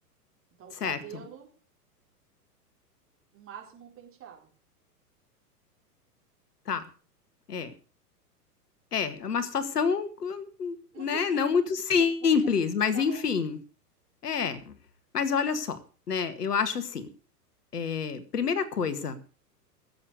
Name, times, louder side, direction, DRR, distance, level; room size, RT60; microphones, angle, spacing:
voice 1, 0.6-1.5 3.3-4.5 10.9-11.4 12.0-12.1 12.9-13.2, right 9 dB, 25° right, 1 dB, 4.7 m, -45 dB
voice 2, 8.9-13.6 14.2-14.6 15.1-15.8 16.1-17.1 17.7-19.2, left 6 dB, 75° left, 12 dB, 1.9 m, -27 dB
17.0 x 8.0 x 6.7 m, 0.37 s
figure-of-eight pair, 105°, 48 cm